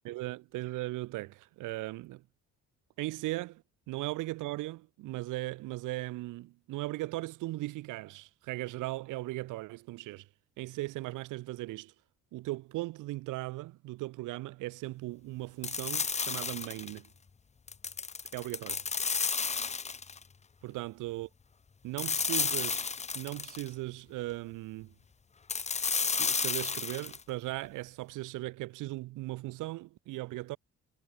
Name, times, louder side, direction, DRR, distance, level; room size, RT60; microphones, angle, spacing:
voice 1, 0.0-2.2 3.0-10.3 10.6-11.9 12.3-17.1 18.3-18.8 20.6-21.3 21.8-22.9 23.1-24.9 26.0-30.6, right 19 dB, 90° right, 0.7 m, -38 dB
sound 1, 15.6-17.0 17.7-20.2 22.0-23.7 25.5-27.2, left 5 dB, 20° left, 0.7 m, -32 dB
cardioid pair, 90°, 30 cm